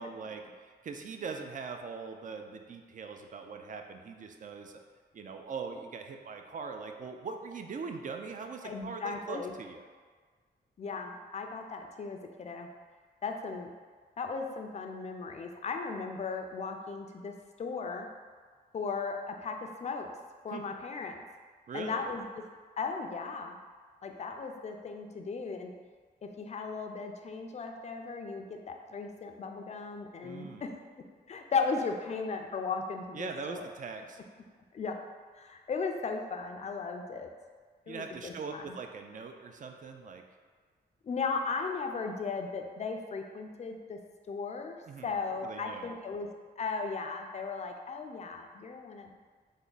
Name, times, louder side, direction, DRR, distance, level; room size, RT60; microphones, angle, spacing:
voice 1, 0.0-4.8 5.1-9.8 20.5-20.8 21.7-22.0 30.2-30.7 33.1-34.2 37.9-40.2 44.9-45.9, right 5 dB, 45° right, 5 dB, 0.4 m, -41 dB
voice 2, 8.6-9.5 10.8-12.7 13.2-13.7 14.2-18.1 18.7-20.1 20.4-21.2 21.7-22.3 22.8-23.6 24.0-25.7 26.2-30.7 31.3-33.6 34.7-35.0 35.3-37.3 37.9-38.8 41.0-44.0 44.3-44.8 45.0-46.3 46.6-49.2, left 4 dB, 40° left, 4 dB, 0.4 m, -36 dB
3.5 x 2.1 x 3.8 m, 1.5 s
cardioid pair, 80°, 18 cm